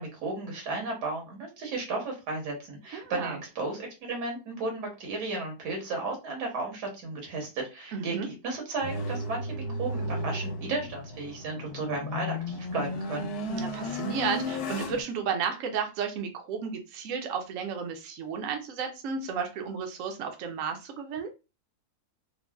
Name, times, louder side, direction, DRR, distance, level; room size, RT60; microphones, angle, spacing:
voice 1, 0.0-13.3, right 3 dB, 85° right, 1 dB, 1.7 m, -34 dB
voice 2, 2.9-3.4 7.9-8.3 13.5-21.3, right 6 dB, 65° right, 4 dB, 0.8 m, -33 dB
sound 1, 8.8-15.0, left 1 dB, 75° left, 1.2 m, -34 dB
3.7 x 2.0 x 2.2 m, 0.28 s
omnidirectional pair, 1.7 m